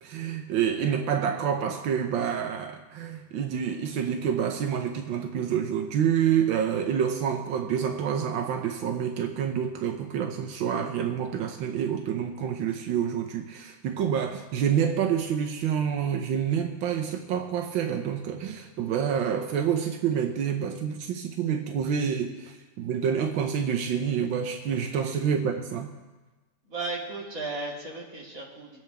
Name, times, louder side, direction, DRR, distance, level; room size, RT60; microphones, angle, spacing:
voice 1, 0.0-25.9, right 8 dB, 85° right, 5 dB, 1.6 m, -28 dB
voice 2, 26.7-28.8, right 3 dB, 45° right, -4 dB, 3.0 m, -35 dB
24.5 x 9.0 x 3.4 m, 1.2 s
omnidirectional pair, 2.1 m